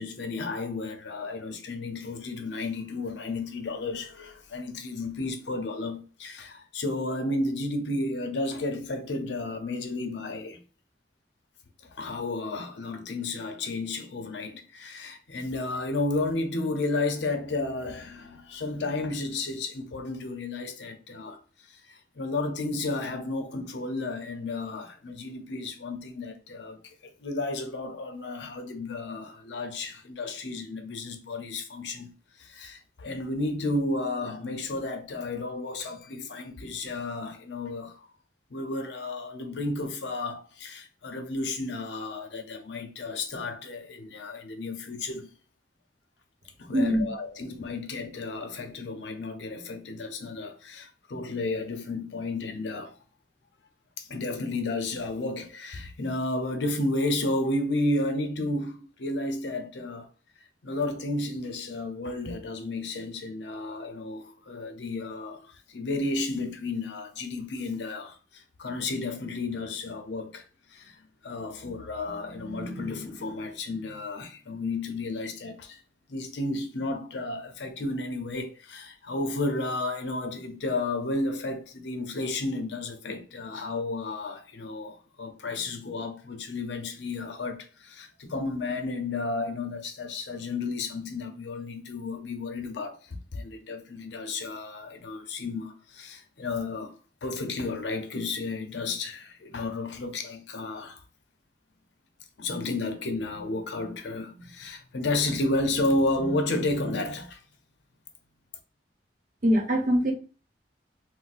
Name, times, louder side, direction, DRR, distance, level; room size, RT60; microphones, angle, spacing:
voice 1, 0.0-10.6 12.0-21.4 21.7-38.1 38.5-45.3 46.6-53.0 54.0-60.1 60.6-75.8 76.1-101.0 102.4-107.4, left 2 dB, 85° left, 0.6 m, -32 dB
voice 2, 109.4-110.1, equal, 50° right, 0.9 m, -22 dB
4.0 x 2.1 x 2.5 m
head